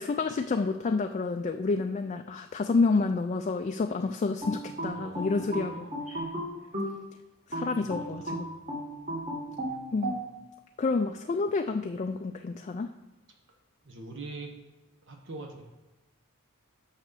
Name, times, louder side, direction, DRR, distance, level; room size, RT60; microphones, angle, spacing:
voice 1, 0.0-6.3 7.5-8.5 9.9-10.2 10.8-12.9, left 4 dB, 35° left, 5 dB, 0.3 m, -29 dB
sound 1, 4.4-7.0 7.5-10.2, right 1 dB, 35° right, 2.0 m, -34 dB
voice 2, 4.9-6.0 7.6-8.6 13.8-14.5 15.1-15.6, right 2 dB, 55° right, 2 dB, 1.1 m, -44 dB
6.0 x 5.8 x 6.7 m, 1.1 s
head